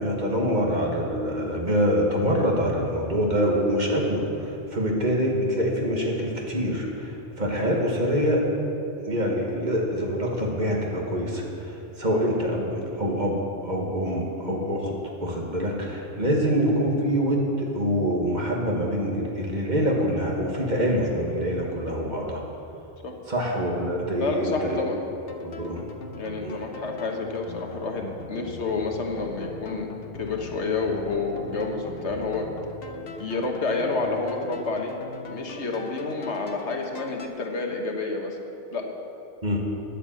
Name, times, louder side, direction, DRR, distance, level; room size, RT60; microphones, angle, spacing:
voice 1, 0.0-8.4 9.0-13.4 13.6-22.4 23.3-24.8 25.4-25.8 26.4-26.6 39.4-39.6, equal, 40° right, -1 dB, 1.7 m, -25 dB
voice 2, 24.2-25.0 26.2-29.9 30.1-32.5 33.2-34.9 35.3-38.4 38.7-38.9, left 3 dB, 85° left, 2 dB, 1.5 m, -29 dB
sound 1, 25.3-37.3, left 3 dB, 60° left, 1.0 m, -40 dB
10.5 x 8.6 x 7.7 m, 2.8 s
omnidirectional pair, 1.1 m